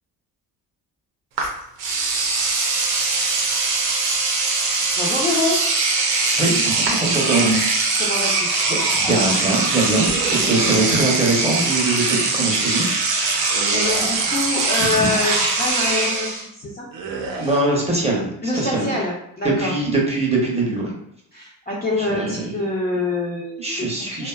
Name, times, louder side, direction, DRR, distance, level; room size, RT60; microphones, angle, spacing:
Engine / Domestic sounds home sounds, 1.4-1.5 1.8-16.4, right 3 dB, 90° right, 0.6 m, -21 dB
voice 1, 5.0-5.6 8.0-8.5 8.9-9.0 13.3-16.9 18.4-19.7 21.3-24.3, left 2 dB, 20° left, -5 dB, 0.6 m, -25 dB
voice 2, 6.3-7.9 8.7-12.9 13.1-13.3 14.8-15.1 17.4-18.9 19.4-21.0 22.0-22.5 23.6-24.3, right 2 dB, 15° right, -3 dB, 0.8 m, -22 dB
sound 1, 10.0-11.1 13.5-14.5 16.9-17.6, right 4 dB, 45° right, 0.6 m, -31 dB
2.5 x 2.2 x 2.3 m, 0.76 s
hypercardioid pair, 50°, 49 cm